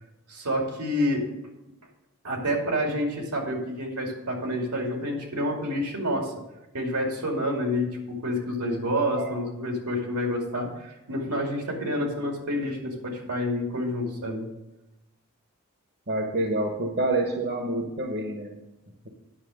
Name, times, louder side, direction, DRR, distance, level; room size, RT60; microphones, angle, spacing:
voice 1, 0.3-1.3 2.2-6.3 6.7-14.4, equal, 85° right, 1 dB, 2.5 m, -28 dB
voice 2, 16.1-18.5, right 2 dB, 50° right, 3 dB, 1.0 m, -27 dB
10.0 x 6.2 x 6.4 m, 0.96 s
head